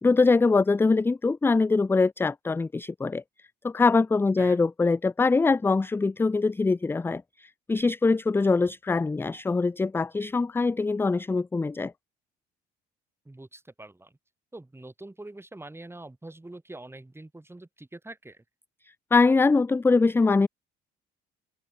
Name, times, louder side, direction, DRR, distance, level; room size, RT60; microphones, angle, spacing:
voice 1, 0.0-3.2 3.6-11.9 19.1-20.5, left 3 dB, 10° left, 0.3 m, -23 dB
voice 2, 13.2-14.1 14.5-18.4, right 2 dB, 10° right, 4.1 m, -44 dB
open air
supercardioid pair, 65°, 20 cm